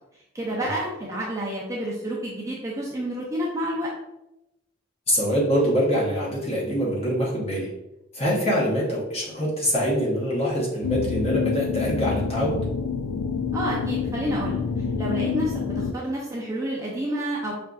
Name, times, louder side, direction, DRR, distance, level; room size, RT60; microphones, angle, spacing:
voice 1, 0.3-3.9 13.5-14.6 15.0-17.5, equal, 15° right, -5 dB, 0.5 m, -29 dB
voice 2, 5.1-7.7 8.1-12.5, equal, 30° left, -5 dB, 0.9 m, -24 dB
sound 1, 10.8-15.9, left 5 dB, 90° left, 0.4 m, -27 dB
5.4 x 2.5 x 2.3 m, 0.92 s
head